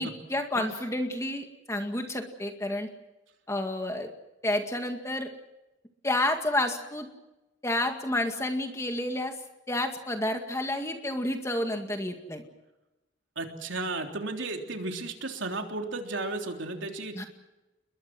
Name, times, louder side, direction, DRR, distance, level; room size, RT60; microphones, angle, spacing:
voice 1, 0.0-2.9 3.5-4.1 4.4-5.3 6.0-7.1 7.6-9.4 9.7-12.4 17.1-17.2, left 1 dB, 15° left, 5 dB, 2.1 m, -30 dB
voice 2, 13.4-17.3, right 2 dB, 75° right, 3 dB, 3.5 m, -34 dB
29.0 x 22.0 x 6.2 m, 1.0 s
head